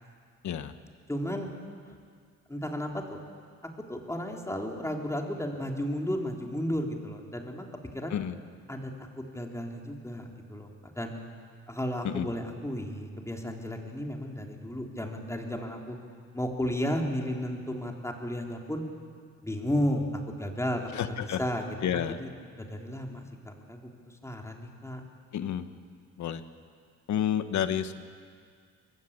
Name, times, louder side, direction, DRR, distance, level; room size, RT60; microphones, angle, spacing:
voice 1, 1.1-1.5 2.5-3.2 3.9-7.7 7.9-8.2 8.7-8.9 9.3-11.1 11.7-16.0 16.3-18.8 19.4-20.1 20.4-22.3 22.6-23.9 24.2-25.0, equal, 10° left, 1 dB, 3.5 m, -33 dB
voice 2, 20.9-21.4 21.8-22.2 25.3-25.6 26.2-26.4 27.1-28.0, left 9 dB, 70° left, 10 dB, 1.4 m, -30 dB
23.5 x 21.0 x 8.8 m, 2.1 s
cardioid pair, 90°, 30 cm